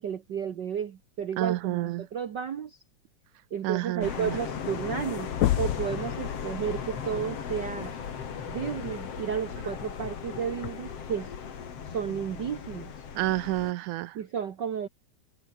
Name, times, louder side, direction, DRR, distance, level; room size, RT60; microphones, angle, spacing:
voice 1, 0.0-2.8 3.5-5.3 5.6-7.9 8.5-11.3 11.8-12.9 14.1-14.9, right 8 dB, 65° right, 1.0 m, -32 dB
voice 2, 1.4-2.1 3.6-4.4 13.1-14.2, right 16 dB, 85° right, 2.3 m, -29 dB
sound 1, 4.0-13.7, left 7 dB, 55° left, 3.3 m, -37 dB
sound 2, 5.3-6.0 7.7-7.8 9.6-9.7 10.6-10.7, left 14 dB, 70° left, 2.2 m, -26 dB
omnidirectional pair, 3.5 m